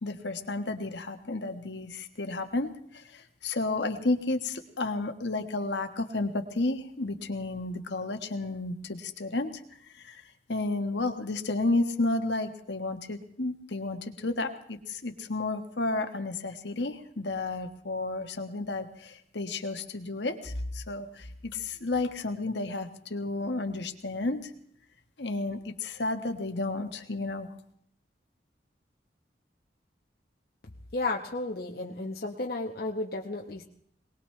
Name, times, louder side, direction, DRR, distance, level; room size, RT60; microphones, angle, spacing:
voice 1, 0.0-9.5 9.9-10.2 10.5-24.5 25.2-27.5, left 2 dB, 70° left, 6 dB, 1.4 m, -32 dB
voice 2, 30.9-33.6, left 2 dB, 55° left, 0 dB, 1.1 m, -33 dB
23.0 x 19.5 x 3.3 m, 0.66 s
head